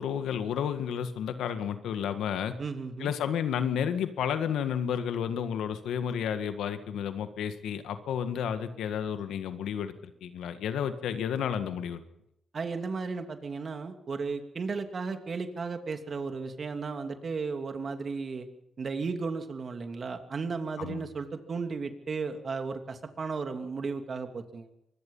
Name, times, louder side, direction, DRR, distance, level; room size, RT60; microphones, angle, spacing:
voice 1, 0.0-2.5 3.0-9.9 10.2-12.0 20.8-21.0, left 8 dB, 85° left, 9 dB, 1.8 m, -31 dB
voice 2, 2.6-3.1 12.5-18.5 18.8-24.7, right 4 dB, 50° right, 6 dB, 2.9 m, -34 dB
24.5 x 21.0 x 5.6 m, 0.81 s
cardioid pair, 60°, 0 cm